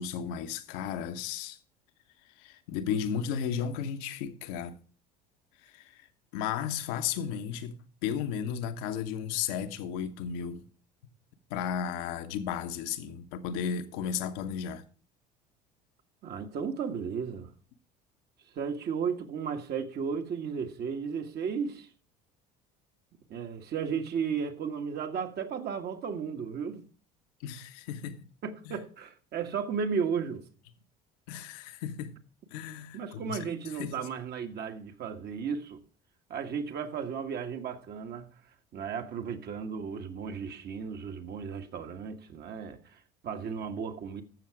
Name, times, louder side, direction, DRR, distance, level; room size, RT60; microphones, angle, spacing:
voice 1, 0.0-1.6 2.4-4.8 5.6-6.1 6.3-10.6 11.5-14.8 27.4-28.3 28.6-28.8 31.3-32.2 32.5-33.9, left 8 dB, 70° left, 1.2 m, -34 dB
voice 2, 16.2-17.5 18.5-21.9 23.3-26.8 28.4-30.4 32.9-35.8 36.3-38.3 38.7-44.2, right 6 dB, 50° right, 1.7 m, -34 dB
14.0 x 6.7 x 4.8 m
hypercardioid pair, 70°, 21 cm